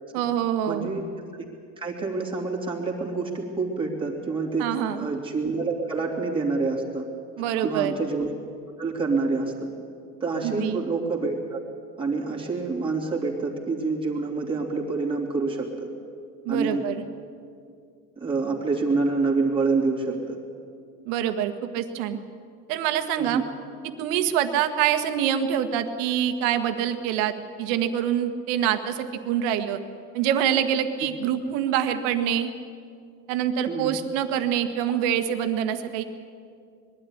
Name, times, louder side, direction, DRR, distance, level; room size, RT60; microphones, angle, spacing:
voice 1, 0.1-0.9 4.6-5.1 7.4-7.9 10.4-10.8 16.4-17.0 21.0-22.2 22.7-23.4 24.0-29.8 30.1-32.5 33.3-36.0, right 9 dB, 75° right, 8 dB, 1.6 m, -25 dB
voice 2, 0.7-1.0 1.3-1.4 1.8-7.0 7.6-8.3 8.8-9.5 10.2-11.6 12.0-15.9 16.5-16.8 18.2-20.4 23.2-23.4 33.7-33.9, right 3 dB, 15° right, -2 dB, 3.0 m, -27 dB
21.5 x 12.0 x 10.0 m, 2.3 s
cardioid pair, 145°, 36 cm